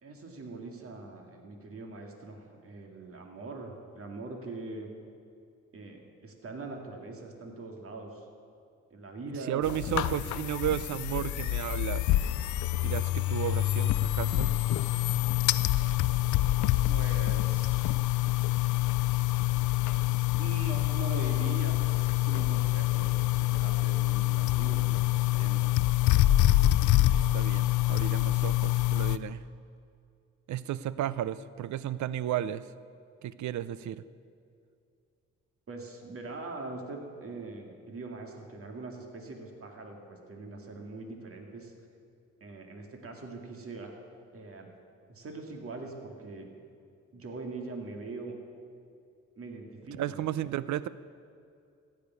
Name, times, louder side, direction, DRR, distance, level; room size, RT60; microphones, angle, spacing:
voice 1, 0.0-4.9 5.7-8.3 8.9-10.1 16.9-18.0 20.4-25.6 35.7-41.7 42.4-43.9 44.3-44.7 45.1-46.5 47.1-48.3 49.4-50.2, right 3 dB, 50° right, 2 dB, 2.2 m, -42 dB
voice 2, 9.5-12.1 12.8-14.5 27.1-29.4 30.5-32.7 33.2-34.0 50.0-50.9, right 11 dB, 75° right, 17 dB, 0.6 m, -33 dB
sound 1, 9.6-29.2, left 16 dB, 85° left, 0.5 m, -26 dB
15.0 x 6.8 x 9.5 m, 2.4 s
cardioid pair, 85°, 29 cm